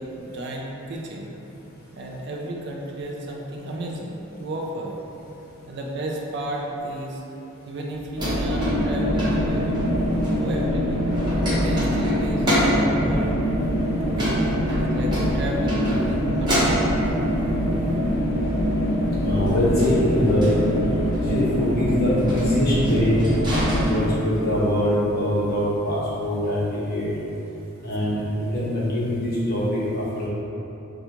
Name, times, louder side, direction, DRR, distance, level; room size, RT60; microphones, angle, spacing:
voice 1, 0.0-1.3 1.9-5.0 5.7-7.2 7.7-9.7 10.4-11.0 11.4-13.4 14.0-16.9, right 1 dB, 50° right, -1 dB, 0.4 m, -33 dB
sound 1, 8.0-10.8 11.0-12.9 14.1-16.1 16.4-17.3 19.5-20.5 21.1-21.3 22.2-24.5, equal, 20° right, 0.9 m, -28 dB
sound 2, 8.2-23.9, equal, 80° left, 0.8 m, -24 dB
voice 2, 19.2-20.5 21.2-23.2 23.7-27.1 27.8-30.3, left 1 dB, 45° left, -8 dB, 0.9 m, -23 dB
4.9 x 2.3 x 2.9 m, 3.0 s
head